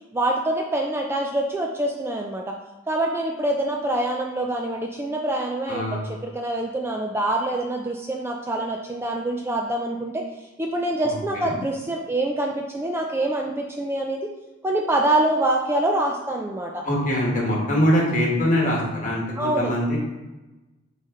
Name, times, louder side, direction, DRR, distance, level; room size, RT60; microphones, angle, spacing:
voice 1, 0.1-2.5 2.9-10.2 10.6-14.3 14.6-16.8 19.4-19.7, right 1 dB, 10° right, 1 dB, 0.4 m, -25 dB
voice 2, 5.7-6.0 11.0-11.6 16.8-20.0, equal, 40° left, -3 dB, 1.6 m, -23 dB
6.3 x 4.2 x 3.8 m, 1.1 s
head